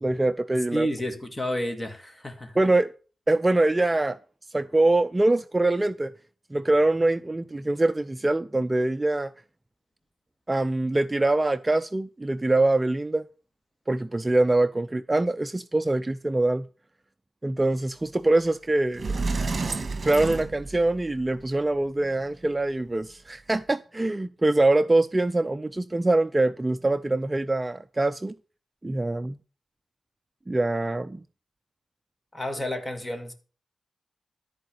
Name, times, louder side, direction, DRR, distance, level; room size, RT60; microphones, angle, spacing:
voice 1, 0.0-0.9 2.6-2.9 3.3-4.2 4.5-6.1 6.5-9.3 10.5-13.3 13.9-16.7 17.4-19.2 20.0-28.3 28.8-29.4 30.5-31.2, right 2 dB, 20° right, 0.4 m, -24 dB
voice 2, 0.7-2.6 32.3-33.3, equal, 20° left, 2.1 m, -31 dB
Sliding door, 18.5-18.6 18.9-21.2, right 3 dB, 40° right, 2.1 m, -30 dB
13.5 x 4.8 x 7.9 m
wide cardioid pair, 105°, 0 cm